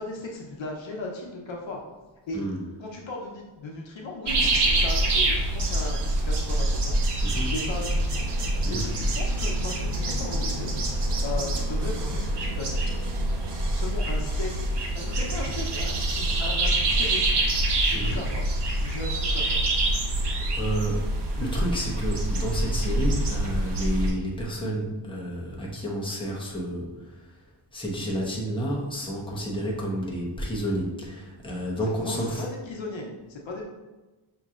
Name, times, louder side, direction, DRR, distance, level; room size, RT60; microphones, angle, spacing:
voice 1, 0.0-1.8 2.3-2.4 2.8-7.0 7.3-8.3 8.7-10.7 11.2-12.9 13.7-17.6 17.9-18.5 18.8-19.6 31.8-33.6, left 2 dB, 65° left, -1 dB, 0.9 m, -37 dB
sound 1, 4.3-24.1, right 1 dB, 55° right, 0.9 m, -26 dB
voice 2, 7.2-7.5 8.6-8.9 17.9-18.2 20.5-21.0 21.4-26.9 27.7-32.4, equal, 10° left, -3 dB, 1.1 m, -30 dB
6.3 x 3.0 x 2.5 m, 1.2 s
cardioid pair, 90°, 49 cm